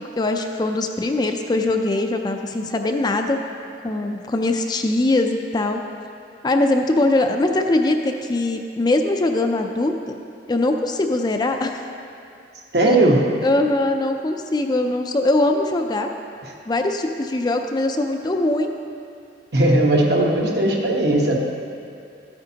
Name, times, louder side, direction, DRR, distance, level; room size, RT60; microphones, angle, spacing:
voice 1, 0.2-3.4 3.8-5.8 6.4-10.2 10.5-11.8 12.8-13.0 13.4-16.1 16.7-18.7, left 2 dB, 25° left, 4 dB, 0.4 m, -21 dB
voice 2, 12.7-13.3 19.5-21.4, right 1 dB, 65° right, -1 dB, 1.2 m, -17 dB
12.5 x 8.7 x 2.8 m, 2.5 s
head